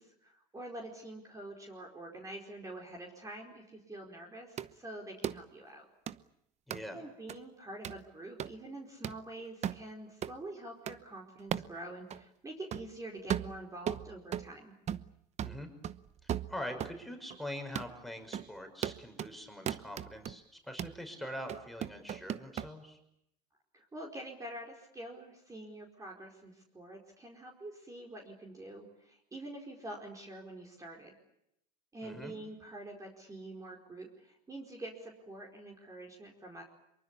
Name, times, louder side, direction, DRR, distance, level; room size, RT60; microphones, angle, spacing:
voice 1, 0.0-5.9 6.9-14.7 23.7-31.1 31.9-36.6, right 1 dB, 15° right, 1 dB, 4.9 m, -46 dB
sound 1, 4.6-4.7 5.2-5.4 6.1-6.2 6.7-6.8 7.3-7.4 7.8-8.0 8.4-8.5 9.0-9.2 9.6-9.8 10.2-10.4 10.9-11.0 11.5-11.7 12.1-12.2 12.7-12.9 13.3-14.5 14.9-15.1 15.4-17.0 17.3-17.4 17.7-17.9 18.3-18.5 18.8-19.3 19.7-20.3 20.8-21.0 21.5-22.7, right 10 dB, 35° right, 0.9 m, -37 dB
voice 2, 6.7-7.1 15.4-15.7 16.2-23.0 32.0-32.4, left 1 dB, ahead, 5 dB, 5.6 m, -43 dB
25.0 x 23.5 x 8.6 m, 0.79 s
supercardioid pair, 125°, 20 cm